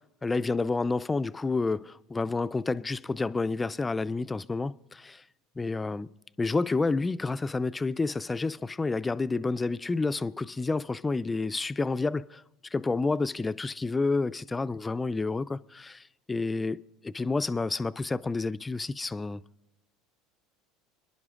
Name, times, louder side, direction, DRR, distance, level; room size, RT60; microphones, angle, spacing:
voice 1, 0.2-5.2 5.6-6.1 6.4-12.4 12.7-19.4, left 3 dB, 15° left, 0.3 m, -29 dB
27.5 x 11.0 x 2.4 m
hypercardioid pair, 75°, 0 cm